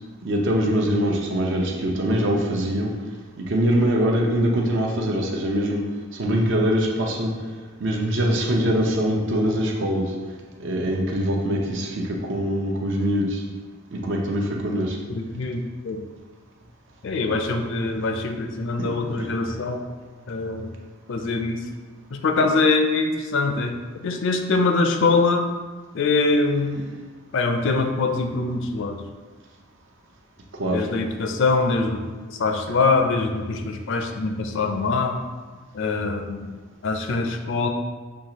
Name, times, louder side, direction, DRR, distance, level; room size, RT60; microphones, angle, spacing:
voice 1, 0.2-2.9 3.4-5.8 6.2-7.3 7.8-10.1 10.6-13.4 13.9-15.0 18.8-18.9 19.2-19.3 30.6-30.8 32.7-32.8, equal, 60° right, 0 dB, 0.7 m, -23 dB
voice 2, 15.1-16.0 17.0-19.8 20.3-20.7 21.1-21.6 22.1-23.8 24.0-25.5 25.9-26.9 27.3-29.0 30.7-32.0 32.3-35.2 35.7-36.5 36.8-37.7, left 3 dB, 60° left, 5 dB, 0.4 m, -23 dB
6.3 x 2.4 x 2.9 m, 1.4 s
head